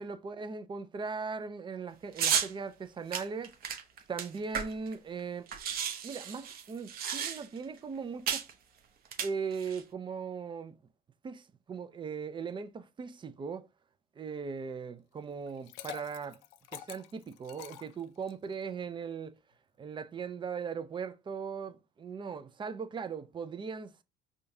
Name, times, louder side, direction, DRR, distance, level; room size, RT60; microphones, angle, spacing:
voice 1, 0.0-3.5 4.1-5.5 6.0-8.4 9.2-10.8 11.2-13.7 14.2-16.4 16.7-19.4 19.8-24.0, right 5 dB, 25° right, 0.5 m, -39 dB
sound 1, 2.2-2.5 3.1-4.9 5.2-5.3 5.5-7.6 8.3-8.5 9.1-9.8, right 8 dB, 50° right, 0.8 m, -33 dB
Liquid, 15.5-18.5, left 13 dB, 75° left, 0.5 m, -47 dB
5.0 x 2.3 x 2.7 m
supercardioid pair, 95°, 20 cm